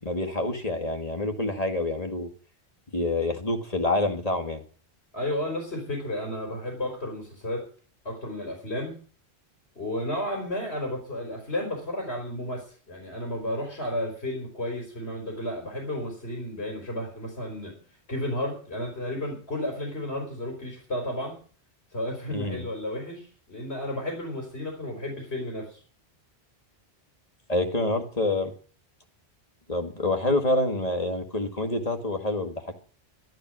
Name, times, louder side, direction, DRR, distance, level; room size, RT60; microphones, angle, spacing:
voice 1, 0.0-2.3 2.9-4.6 22.3-22.7 27.5-28.5 29.7-32.6, left 2 dB, 35° left, 5 dB, 2.1 m, -27 dB
voice 2, 5.1-7.7 8.0-9.0 9.7-17.7 18.1-21.4 21.9-25.8, left 1 dB, 70° left, 1 dB, 4.7 m, -32 dB
12.5 x 12.5 x 6.2 m, 0.40 s
omnidirectional pair, 1.1 m